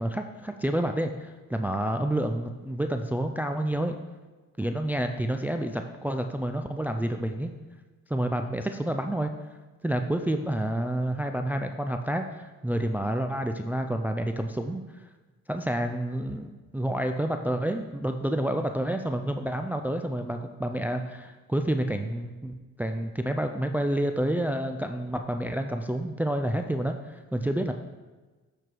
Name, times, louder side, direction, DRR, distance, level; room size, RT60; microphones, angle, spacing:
voice 1, 0.0-4.0 4.6-7.5 8.1-9.3 9.8-14.8 15.5-27.7, right 1 dB, 5° right, 6 dB, 0.4 m, -29 dB
8.0 x 4.6 x 4.8 m, 1.3 s
cardioid pair, 90°, 30 cm